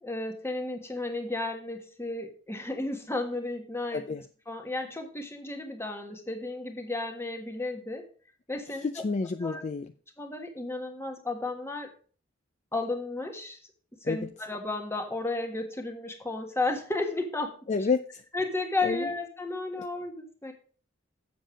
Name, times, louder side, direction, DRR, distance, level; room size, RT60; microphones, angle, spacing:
voice 1, 0.0-4.1 4.5-8.0 8.5-9.0 9.4-9.6 10.2-11.9 12.7-13.6 14.0-17.6 18.3-20.5, left 2 dB, 15° left, 4 dB, 1.5 m, -33 dB
voice 2, 3.9-4.2 8.8-9.9 14.0-14.2 17.7-18.2 18.8-19.1, left 4 dB, 35° left, 9 dB, 0.4 m, -29 dB
7.7 x 7.4 x 5.0 m, 0.42 s
head